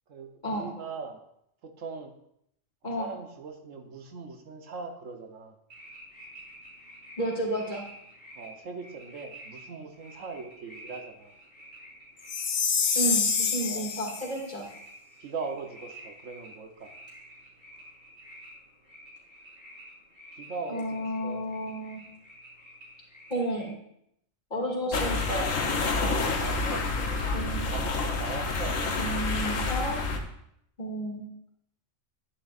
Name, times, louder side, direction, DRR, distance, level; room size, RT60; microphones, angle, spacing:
voice 1, 0.1-1.2 1.6-2.1 2.8-5.5 8.4-11.3 13.6-13.9 14.5-14.7 15.2-16.9 20.4-21.5 26.1-27.4 27.6-28.8, right 4 dB, 80° right, 4 dB, 1.4 m, -40 dB
sound 1, 5.7-23.7, right 1 dB, 25° right, 3.8 m, -50 dB
voice 2, 7.2-7.9 12.9-14.7 20.7-22.0 23.3-23.7 24.5-25.5 27.3-27.7 29.0-30.0 30.8-31.3, right 1 dB, 35° left, -3 dB, 2.7 m, -32 dB
Chime, 12.3-14.3, left 6 dB, 65° left, 1.3 m, -26 dB
sound 2, 24.9-30.2, left 3 dB, 85° left, 1.5 m, -28 dB
11.5 x 10.5 x 2.5 m, 0.75 s
omnidirectional pair, 1.3 m